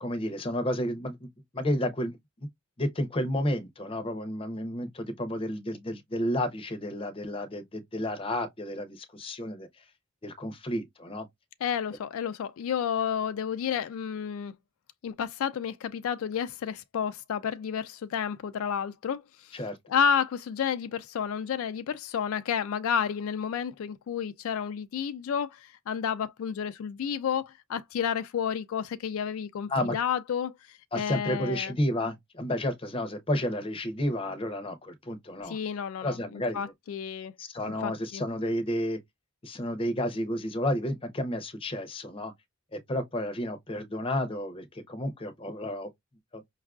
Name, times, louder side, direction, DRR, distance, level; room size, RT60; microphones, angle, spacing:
voice 1, 0.0-1.3 1.5-2.2 2.8-9.7 10.2-11.3 19.5-19.8 29.7-30.0 30.9-35.6 36.0-36.7 37.4-39.0 39.4-42.3 42.7-45.9 46.3-46.4, left 1 dB, 25° left, 0.6 m, -31 dB
voice 2, 11.6-14.5 15.0-19.6 19.9-31.7 35.4-37.3 37.8-38.2, left 7 dB, 75° left, 0.3 m, -31 dB
5.2 x 2.4 x 2.3 m
head